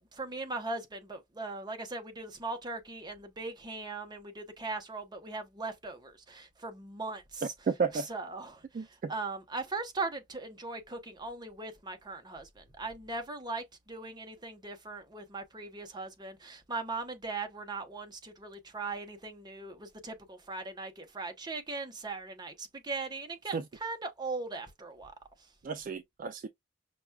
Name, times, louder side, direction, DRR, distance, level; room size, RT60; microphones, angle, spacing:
voice 1, 0.1-7.5 7.9-25.1, right 3 dB, 20° right, 0.9 m, -39 dB
voice 2, 7.7-8.1 8.7-9.1 23.5-23.6 25.6-26.5, right 5 dB, 45° right, 0.3 m, -32 dB
5.9 x 2.2 x 2.3 m
head